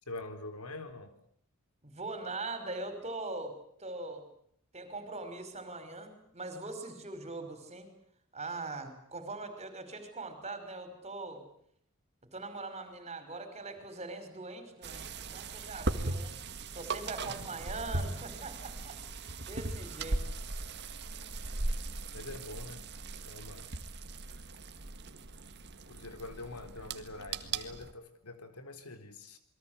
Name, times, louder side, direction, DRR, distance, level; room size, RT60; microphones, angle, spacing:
voice 1, 0.1-1.1 17.3-17.5 20.2-20.4 22.1-22.9 23.1-23.7 24.3-24.6 25.9-29.4, left 2 dB, 85° left, 9 dB, 3.9 m, -45 dB
voice 2, 1.8-3.5 3.8-4.2 4.7-7.9 8.3-11.4 12.3-16.4 16.7-19.0 19.5-20.2, right 3 dB, 30° right, 9 dB, 5.7 m, -41 dB
sound 1, 14.8-27.9, right 2 dB, 50° right, 1.9 m, -38 dB
28.0 x 22.5 x 8.3 m, 0.67 s
head